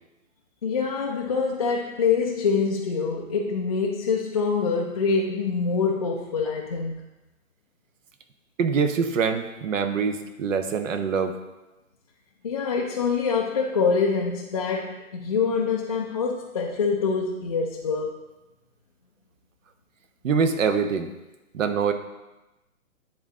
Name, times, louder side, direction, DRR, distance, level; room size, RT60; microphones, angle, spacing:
voice 1, 0.6-7.0 12.4-18.2, left 5 dB, 30° left, -4 dB, 0.3 m, -25 dB
voice 2, 8.6-11.4 20.2-21.1 21.5-21.9, right 6 dB, 65° right, 8 dB, 0.9 m, -24 dB
9.8 x 3.8 x 3.7 m, 1.0 s
hypercardioid pair, 145°, 42 cm